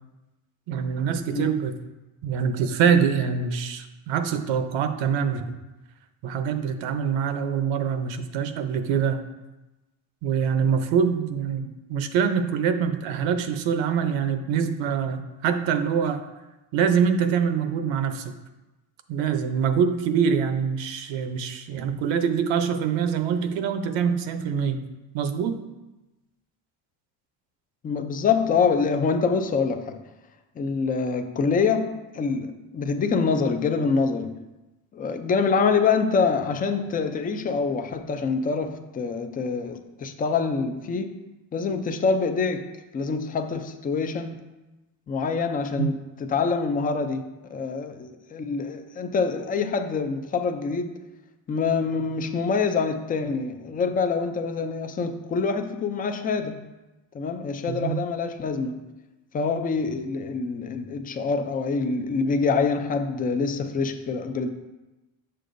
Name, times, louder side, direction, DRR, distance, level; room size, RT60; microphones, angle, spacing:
voice 1, 0.7-1.7 2.2-5.5 6.2-9.2 10.2-16.2 16.7-18.3 19.1-24.8 25.1-25.6 45.8-45.9 57.7-58.0, right 7 dB, 70° right, 8 dB, 0.8 m, -24 dB
voice 2, 27.8-30.0 30.6-34.4 34.9-41.2 41.5-42.7 42.9-44.4 45.1-51.0 51.5-56.6 57.1-58.9 59.3-64.5, left 5 dB, 20° left, 7 dB, 0.3 m, -25 dB
7.4 x 6.7 x 2.6 m, 1.1 s
cardioid pair, 130°, 47 cm